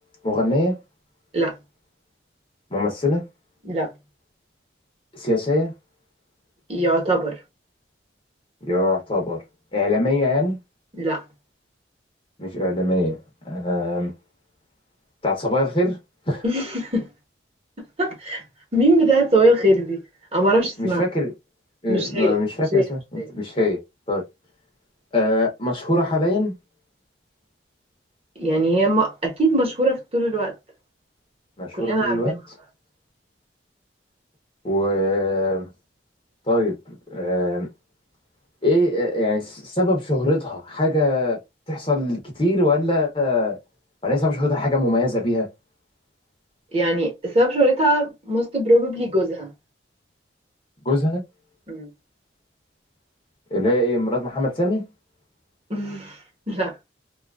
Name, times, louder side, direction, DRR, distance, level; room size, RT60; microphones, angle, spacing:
voice 1, 0.2-0.8 2.7-3.2 5.1-5.7 8.7-9.4 9.7-10.6 12.4-13.2 13.4-14.1 15.2-16.0 16.3-16.4 20.8-21.3 21.8-23.8 24.1-24.2 25.1-26.5 31.6-32.3 34.6-35.7 36.5-37.7 38.6-41.4 41.7-43.6 44.0-45.5 50.8-51.2 53.5-54.9, left 1 dB, 30° left, 0.7 m, -22 dB
voice 2, 6.7-7.4 11.0-11.2 16.4-17.1 18.0-18.4 18.7-20.0 20.3-21.0 21.9-22.4 22.7-22.8 23.2-23.3 28.4-30.5 31.7-32.4 46.7-49.5 51.7-51.9 55.7-56.2 56.5-56.7, right 1 dB, 30° right, 1.0 m, -21 dB
2.7 x 2.4 x 2.3 m
head